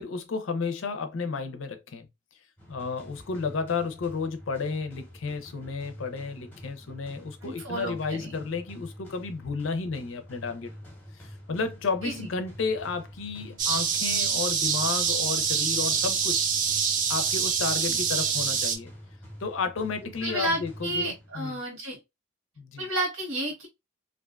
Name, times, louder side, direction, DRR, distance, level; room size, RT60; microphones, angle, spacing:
voice 1, 0.0-2.1 2.7-10.7 11.2-16.4 17.1-18.9 19.4-21.6 22.6-22.9, left 4 dB, 75° left, 0.5 m, -32 dB
sound 1, 2.6-21.6, equal, 10° left, 0.8 m, -47 dB
voice 2, 7.4-8.3 12.0-12.3 17.9-18.0 20.2-22.0 22.8-23.7, right 1 dB, 80° right, 1.2 m, -31 dB
sound 2, 13.6-18.8, right 6 dB, 40° right, 0.4 m, -26 dB
2.4 x 2.2 x 2.3 m
head